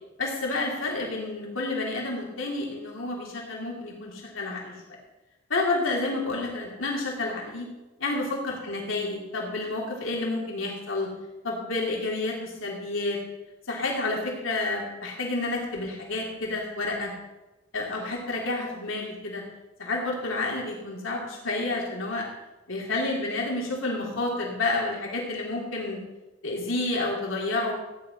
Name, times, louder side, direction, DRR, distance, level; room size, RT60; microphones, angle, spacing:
voice 1, 0.2-4.7 5.5-7.7 8.0-11.1 11.4-13.2 13.7-17.1 17.7-19.4 19.8-22.3 22.7-26.0 26.4-27.7, left 2 dB, 85° left, -2 dB, 3.3 m, -30 dB
15.0 x 9.9 x 5.6 m, 1.1 s
head